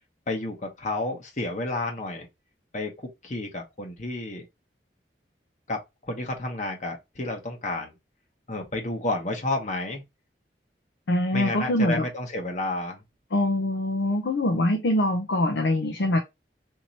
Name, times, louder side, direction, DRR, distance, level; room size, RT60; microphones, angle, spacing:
voice 1, 0.3-2.3 2.7-2.9 3.2-4.5 5.7-7.9 8.5-10.0 11.3-13.0, left 2 dB, 45° left, 1.1 m, -31 dB
voice 2, 11.1-12.1 13.3-16.2, left 1 dB, 80° left, 0.6 m, -24 dB
3.0 x 2.9 x 4.0 m
head